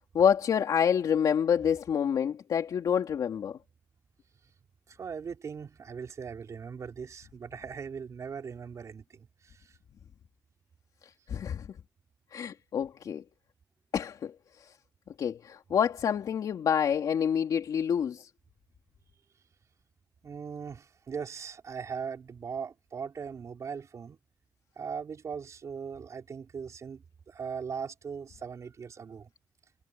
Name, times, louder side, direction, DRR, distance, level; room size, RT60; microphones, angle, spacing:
voice 1, 0.0-3.6 11.0-11.7 12.3-13.2 13.9-14.7 15.2-18.3, left 8 dB, 80° left, 3.1 m, -28 dB
voice 2, 4.9-9.8 20.2-24.2 24.8-29.3, right 6 dB, 55° right, 3.5 m, -39 dB
wide cardioid pair, 120°, 6 cm